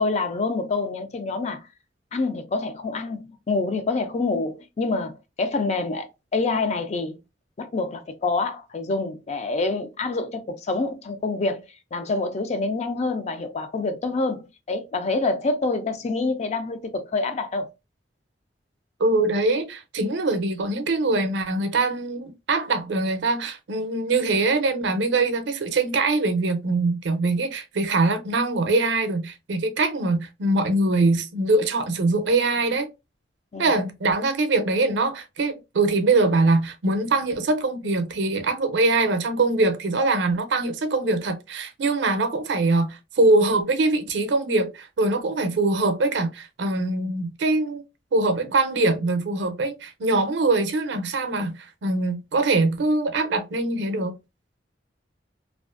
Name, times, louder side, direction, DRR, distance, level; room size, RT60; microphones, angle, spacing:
voice 1, 0.0-1.7 2.1-7.2 7.6-17.7 33.5-33.7, left 3 dB, 40° left, 0.4 m, -27 dB
voice 2, 19.0-32.9 33.6-47.8 48.1-54.1, right 2 dB, 70° right, 0.5 m, -23 dB
2.5 x 2.3 x 2.4 m
head